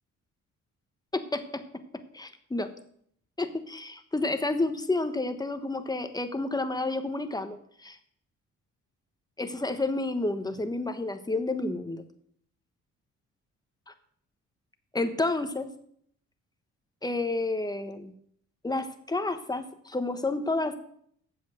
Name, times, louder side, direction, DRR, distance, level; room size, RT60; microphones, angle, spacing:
voice 1, 1.1-1.6 2.1-2.7 3.4-8.0 9.4-12.1 13.9-14.0 14.9-15.7 17.0-18.1 18.6-20.7, left 2 dB, 10° left, 8 dB, 1.2 m, -30 dB
8.4 x 7.3 x 6.4 m, 0.67 s
cardioid pair, 75°, 32 cm